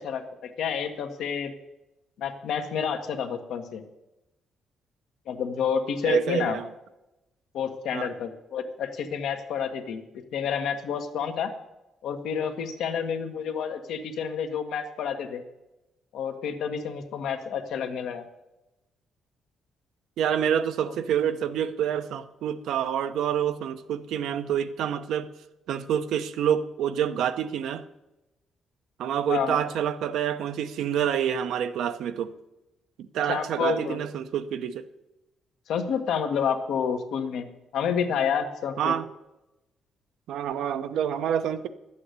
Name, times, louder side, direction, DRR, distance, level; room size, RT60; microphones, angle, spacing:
voice 1, 0.0-1.5 2.2-3.8 5.3-6.6 7.5-11.5 12.0-15.4 16.1-18.2 20.9-21.0 29.3-29.6 33.3-34.0 35.7-38.9, left 7 dB, 75° left, 1.5 m, -29 dB
voice 2, 6.0-6.7 7.9-8.1 20.2-25.3 25.7-27.8 29.0-32.3 33.0-34.9 38.8-39.1 40.3-41.7, right 9 dB, 80° right, 0.9 m, -27 dB
11.5 x 8.5 x 8.2 m
cardioid pair, 125°, 0 cm